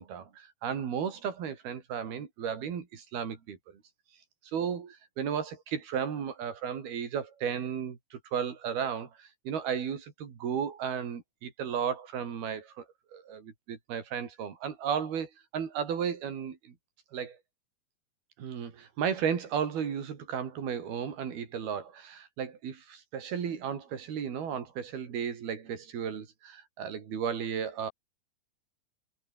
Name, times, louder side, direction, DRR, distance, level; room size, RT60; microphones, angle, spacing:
voice 1, 0.0-3.8 4.5-12.9 13.1-16.8 17.1-17.4 18.4-27.9, right 7 dB, 90° right, 5.3 m, -34 dB
omnidirectional pair, 4.3 m